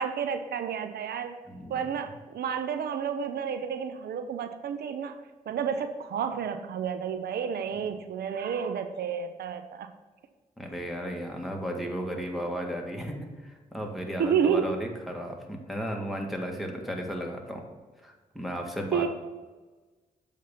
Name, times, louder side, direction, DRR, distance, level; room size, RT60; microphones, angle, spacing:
voice 1, 0.0-1.4 1.7-9.9 14.2-14.7 18.9-19.1, right 7 dB, 75° right, 8 dB, 0.5 m, -30 dB
voice 2, 1.5-1.8 10.6-17.6 18.0-19.1, equal, ahead, 1 dB, 1.7 m, -34 dB
7.5 x 3.6 x 5.8 m, 1.3 s
supercardioid pair, 50°, 17 cm